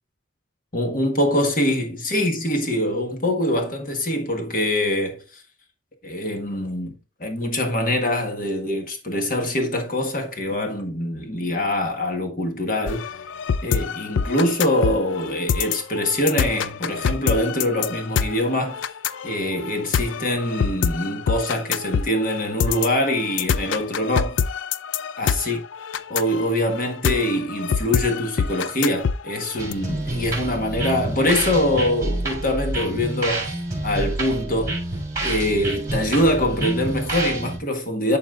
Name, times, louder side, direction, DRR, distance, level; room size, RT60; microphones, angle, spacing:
voice 1, 0.7-5.4 6.0-13.0 13.6-18.8 19.2-24.4 25.2-25.6 26.1-33.5 33.8-34.8 35.2-38.2, left 1 dB, 45° left, 1.5 m, -24 dB
sound 1, 12.9-29.7, left 6 dB, 90° left, 0.4 m, -25 dB
sound 2, 29.6-37.6, right 2 dB, 15° right, 2.9 m, -28 dB
11.0 x 4.3 x 2.4 m
head